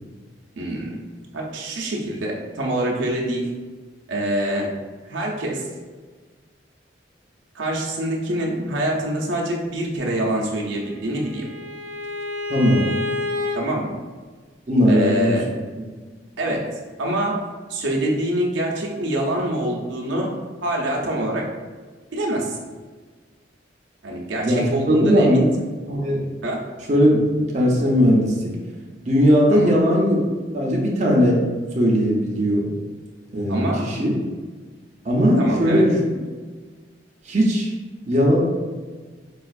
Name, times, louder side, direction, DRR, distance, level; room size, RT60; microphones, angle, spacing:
voice 1, 0.6-1.0 1.3-3.5 4.1-4.8 5.0-5.7 7.5-11.5 13.5-13.9 14.9-15.5 16.4-16.7 17.0-20.3 20.6-21.5 22.1-22.6 24.0-25.5 26.4-26.6 29.5-29.7 33.5-33.9 35.4-35.9, right 1 dB, 80° right, -2 dB, 0.6 m, -25 dB
Bowed string instrument, 10.4-13.6, left 2 dB, 80° left, 0.7 m, -30 dB
voice 2, 12.5-12.9 14.7-15.4 24.4-25.5 25.9-26.3 26.9-28.5 29.1-30.2 30.5-31.4 31.7-32.7 33.3-34.1 35.0-35.9 37.2-37.7 38.1-38.4, equal, 40° right, -3 dB, 0.6 m, -18 dB
4.2 x 2.4 x 2.4 m, 1.4 s
head